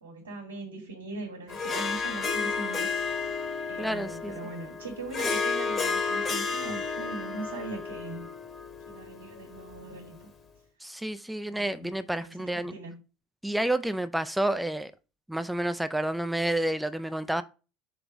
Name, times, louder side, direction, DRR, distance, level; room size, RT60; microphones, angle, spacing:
voice 1, 0.0-2.9 3.7-8.3 8.9-10.3 11.4-11.9 12.2-13.0, right 2 dB, 85° right, 1.6 m, -40 dB
Harp, 1.5-10.1, left 5 dB, 30° left, 1.3 m, -32 dB
voice 2, 3.8-4.3 10.8-12.7 13.4-14.9 15.3-17.4, right 1 dB, 5° right, 0.4 m, -29 dB
6.0 x 3.4 x 5.0 m
figure-of-eight pair, 70°, 0 cm